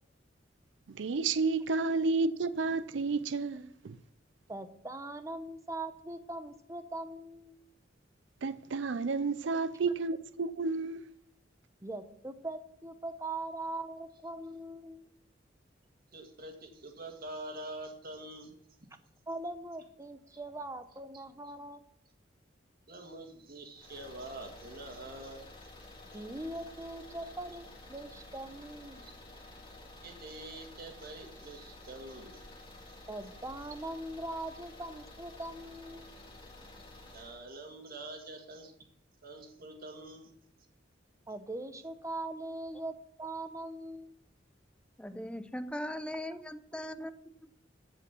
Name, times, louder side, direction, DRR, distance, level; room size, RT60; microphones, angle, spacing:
voice 1, 0.9-4.0 8.4-11.0, right 4 dB, 70° right, 0.5 m, -31 dB
voice 2, 4.5-7.6 11.8-15.0 19.3-21.8 26.1-29.0 33.1-36.1 41.3-44.1, right 2 dB, 15° right, 0.9 m, -41 dB
voice 3, 16.1-18.6 22.9-25.5 29.0-29.1 30.0-32.4 37.1-38.7 39.2-40.3, right 2 dB, 50° right, 2.0 m, -45 dB
sound 1, 23.8-37.4, left 2 dB, 30° left, 2.3 m, -51 dB
voice 4, 45.0-47.5, equal, 5° left, 0.5 m, -40 dB
14.5 x 5.0 x 7.1 m
head